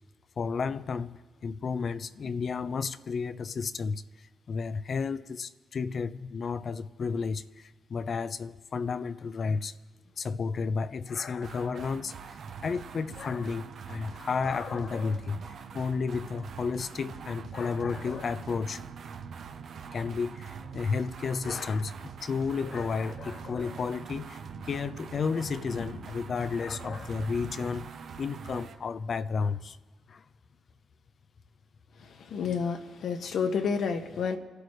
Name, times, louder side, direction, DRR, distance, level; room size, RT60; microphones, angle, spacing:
voice 1, 0.4-9.7 10.2-18.8 19.9-27.9 28.2-29.8 30.1-30.2, left 5 dB, 55° left, 0.7 m, -32 dB
sound 1, 11.4-28.8, right 6 dB, 65° right, 0.9 m, -43 dB
voice 2, 31.9-34.4, left 6 dB, 70° left, 1.5 m, -30 dB
29.5 x 11.5 x 3.3 m
supercardioid pair, 55°, 0 cm